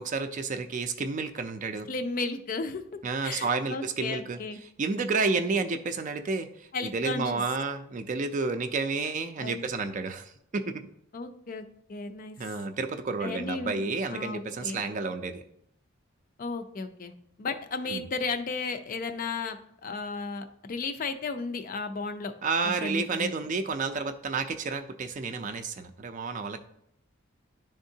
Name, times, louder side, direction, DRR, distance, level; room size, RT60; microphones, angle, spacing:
voice 1, 0.0-1.9 3.0-4.4 4.8-10.7 12.4-15.4 17.9-18.0 22.4-26.6, right 4 dB, 35° right, 9 dB, 0.4 m, -30 dB
voice 2, 1.9-4.6 6.7-7.4 9.4-9.6 11.1-12.4 13.2-14.8 16.4-22.3 22.6-23.3, left 4 dB, 40° left, 8 dB, 0.4 m, -34 dB
10.5 x 3.6 x 2.7 m, 0.74 s
head